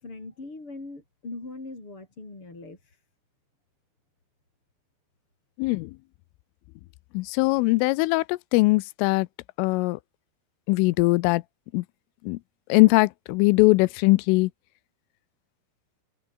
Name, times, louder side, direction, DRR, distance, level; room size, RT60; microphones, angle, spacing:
voice 1, 0.0-3.0, left 3 dB, 25° left, 6.9 m, -41 dB
voice 2, 5.6-5.9 7.1-9.3 9.6-10.0 10.7-11.4 11.7-11.8 12.2-12.4 12.7-14.5, left 23 dB, 85° left, 3.1 m, -21 dB
omnidirectional pair, 5.9 m